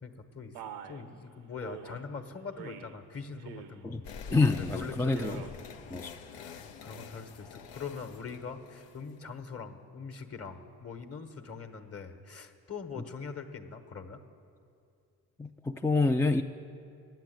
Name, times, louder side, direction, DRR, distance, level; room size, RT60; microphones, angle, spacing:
voice 1, 0.0-5.6 5.8-14.2, left 5 dB, 35° left, 8 dB, 1.1 m, -43 dB
Male speech man speaking, 0.5-1.0 1.6-2.0 2.6-3.0 3.4-3.8 4.2-4.7 5.1-5.5, right 8 dB, 85° right, 0.7 m, -45 dB
sound 1, 4.0-9.3, left 6 dB, 75° left, 0.8 m, -47 dB
voice 2, 4.3-5.4 5.9-6.1 15.4-16.4, left 3 dB, 5° left, 5 dB, 0.3 m, -27 dB
9.8 x 7.7 x 9.2 m, 2.5 s
hypercardioid pair, 50°, 42 cm